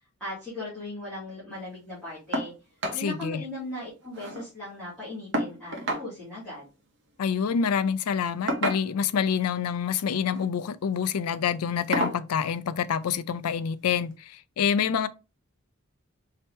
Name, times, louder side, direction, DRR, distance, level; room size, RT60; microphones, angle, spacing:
voice 1, 0.2-2.5 2.9-6.7, left 1 dB, ahead, 2.1 m, -38 dB
sound 1, 2.3-2.5 2.8-3.0 3.4-3.5 3.8-4.5 5.3-6.1 7.3-7.5 8.5-9.1 10.2-10.5 11.0-11.1 11.9-12.2 13.5-13.6 14.1-14.2, right 1 dB, 55° right, 0.9 m, -30 dB
voice 2, 2.9-3.4 7.2-15.1, left 7 dB, 90° left, 0.4 m, -27 dB
4.3 x 2.8 x 3.4 m
head